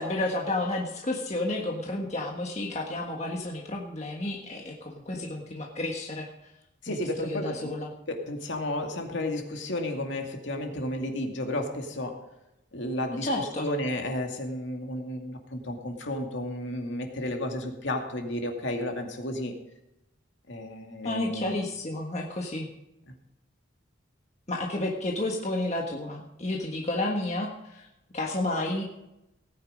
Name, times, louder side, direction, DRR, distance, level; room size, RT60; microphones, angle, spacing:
voice 1, 0.0-6.3 6.9-7.9 13.2-13.7 21.0-22.7 24.5-27.9 28.1-28.8, left 2 dB, 35° left, 0 dB, 1.5 m, -31 dB
voice 2, 6.8-7.7 8.1-12.3 12.7-19.5 20.5-21.6 23.1-23.2, left 1 dB, 65° left, 3 dB, 2.4 m, -32 dB
18.5 x 9.5 x 5.2 m, 0.90 s
head